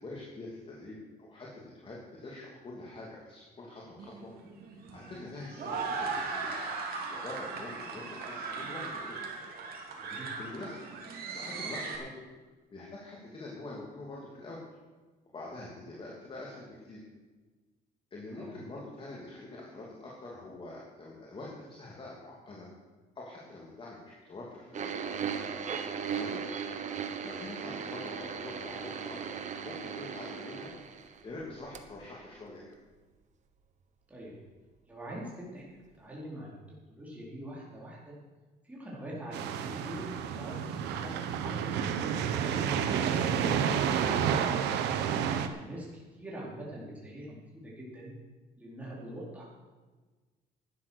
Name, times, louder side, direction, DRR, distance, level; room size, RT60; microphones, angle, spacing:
voice 1, 0.0-4.3 4.9-6.8 7.1-9.2 10.4-10.8 11.3-12.2 12.7-14.6 15.3-17.0 18.1-22.7 23.1-25.1 26.1-26.5 27.2-30.7 31.2-32.7, left 2 dB, 30° left, -4 dB, 2.9 m, -45 dB
sound 1, 4.0-12.0, right 4 dB, 60° right, 3.0 m, -38 dB
voice 2, 10.0-10.4 18.4-18.5 34.1-34.3 34.9-35.6 36.0-36.6 36.9-38.1 38.6-41.7 42.2-44.7 45.6-48.1 48.6-49.4, right 1 dB, 10° right, -6 dB, 4.3 m, -43 dB
sound 2, 24.7-31.4 31.7-31.9 32.6-32.7, right 7 dB, 45° right, 1.3 m, -37 dB
sound 3, 39.3-45.5, right 8 dB, 85° right, 1.1 m, -30 dB
12.0 x 9.8 x 6.5 m, 1.3 s
cardioid pair, 110°, 17 cm